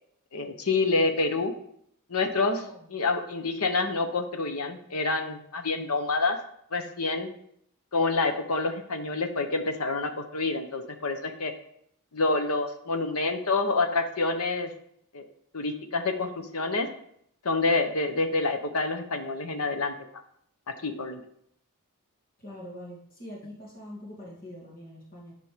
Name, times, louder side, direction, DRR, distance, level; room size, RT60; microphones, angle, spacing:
voice 1, 0.3-1.5 2.1-2.6 2.9-6.4 6.7-7.3 7.9-11.5 12.1-14.7 15.1-15.2 15.5-16.9 17.4-19.9 20.8-21.2, left 3 dB, 70° left, 6 dB, 1.1 m, -27 dB
voice 2, 22.4-25.3, left 1 dB, 40° left, -4 dB, 2.4 m, -44 dB
11.0 x 5.1 x 5.1 m, 0.71 s
head